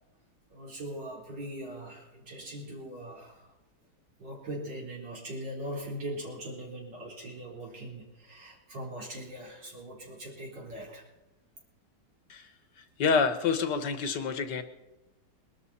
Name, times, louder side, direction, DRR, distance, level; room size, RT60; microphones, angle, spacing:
voice 1, 0.5-3.5 4.2-11.1, right 1 dB, 80° right, -2 dB, 4.5 m, -41 dB
voice 2, 13.0-14.6, left 5 dB, 75° left, 9 dB, 1.7 m, -27 dB
21.5 x 12.5 x 4.2 m, 0.98 s
omnidirectional pair, 1.9 m